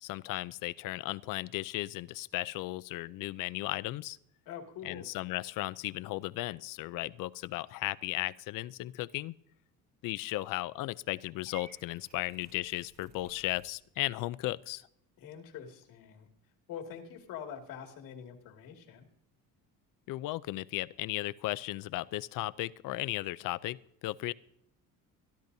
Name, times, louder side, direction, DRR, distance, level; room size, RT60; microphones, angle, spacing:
voice 1, 0.0-4.2 4.8-9.3 10.0-14.9 20.1-23.8 24.0-24.3, left 17 dB, 70° left, 18 dB, 0.5 m, -35 dB
voice 2, 4.5-5.0 15.2-16.3 16.7-19.1, left 8 dB, 90° left, 3 dB, 2.4 m, -45 dB
Purr / Meow, 11.5-13.7, right 5 dB, 50° right, 1.6 m, -55 dB
23.5 x 12.0 x 2.7 m, 0.73 s
cardioid pair, 155°, 33 cm